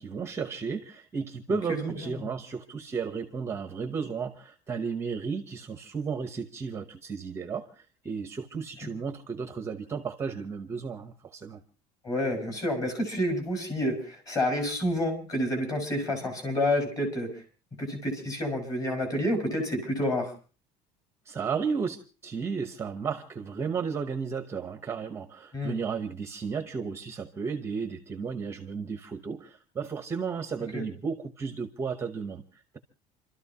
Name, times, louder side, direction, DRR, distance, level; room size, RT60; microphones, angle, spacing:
voice 1, 0.0-11.6 21.3-32.8, right 5 dB, 15° right, 0.8 m, -34 dB
voice 2, 12.0-17.4 17.8-20.3 25.5-25.8 30.7-30.8, left 1 dB, 25° left, 4.7 m, -29 dB
29.0 x 13.0 x 2.8 m
cardioid pair, 170°, 15 cm